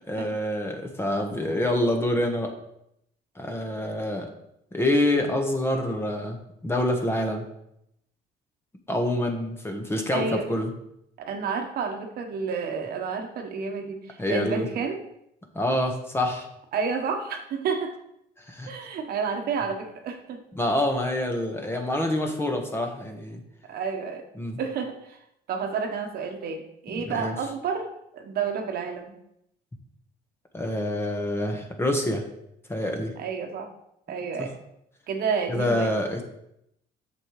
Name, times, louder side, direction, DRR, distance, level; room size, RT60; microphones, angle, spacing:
voice 1, 0.1-2.5 3.4-4.3 4.7-6.4 6.6-7.4 8.9-10.7 14.2-14.7 15.5-16.5 18.5-18.7 20.5-23.4 24.4-24.6 27.0-27.3 30.5-32.2 32.7-33.1 35.5-36.2, left 1 dB, 15° left, 3 dB, 1.2 m, -26 dB
voice 2, 10.1-10.5 11.3-15.0 16.7-18.0 18.7-20.4 23.7-24.2 24.6-25.2 25.5-29.2 33.2-33.7 34.1-34.5 35.1-35.9, right 5 dB, 65° right, 4 dB, 1.2 m, -30 dB
8.3 x 6.6 x 3.2 m, 0.77 s
cardioid pair, 110°, 17 cm